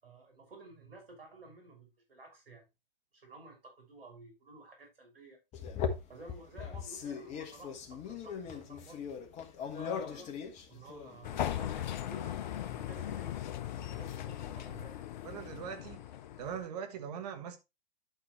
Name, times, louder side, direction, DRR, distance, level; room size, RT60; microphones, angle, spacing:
voice 1, 0.0-2.7 3.1-5.4 6.1-9.1 9.6-10.3 10.7-13.3 13.7-15.0, right 3 dB, 80° right, 5.9 m, -53 dB
sound 1, 5.5-11.5, left 7 dB, 25° left, 1.3 m, -39 dB
sound 2, 11.2-16.7, left 11 dB, 50° left, 0.8 m, -38 dB
voice 2, 15.2-16.0 16.4-17.6, right 8 dB, 45° right, 1.3 m, -41 dB
11.5 x 6.1 x 3.1 m
figure-of-eight pair, 120°, 29 cm